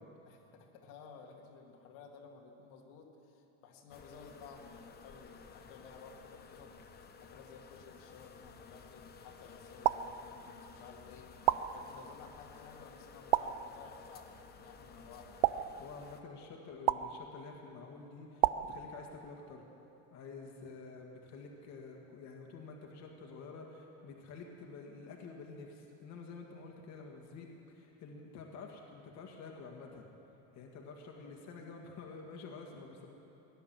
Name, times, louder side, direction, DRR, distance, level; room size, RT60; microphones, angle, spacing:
voice 1, 0.2-15.5 20.4-20.7 31.1-31.3, left 5 dB, 80° left, 0 dB, 2.1 m, -55 dB
sound 1, 3.9-16.2, left 5 dB, 25° left, 0.9 m, -55 dB
sound 2, 9.8-10.7 11.5-12.3 13.3-14.2 15.4-16.3 16.9-17.7 18.4-19.4, right 15 dB, 85° right, 0.6 m, -33 dB
voice 2, 15.8-19.6 20.1-30.1 30.5-33.1, left 4 dB, 50° left, 1 dB, 1.9 m, -49 dB
17.5 x 10.5 x 7.6 m, 2.9 s
cardioid pair, 150°, 35 cm